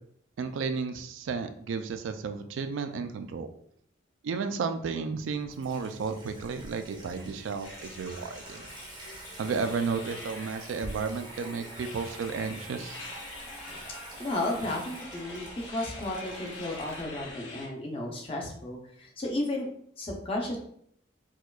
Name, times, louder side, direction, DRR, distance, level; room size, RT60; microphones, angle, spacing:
voice 1, 0.4-3.5 4.2-8.6 9.4-13.0, right 5 dB, 80° right, 8 dB, 0.3 m, -33 dB
Water tap faucet / Sink (filling or washing), 5.1-17.3, right 2 dB, 20° right, 0.6 m, -47 dB
sound 1, 7.6-17.7, left 2 dB, 70° left, 0.7 m, -45 dB
voice 2, 14.2-19.7 20.0-20.6, left 1 dB, 30° left, 0 dB, 0.6 m, -33 dB
4.4 x 2.3 x 2.3 m, 0.66 s
head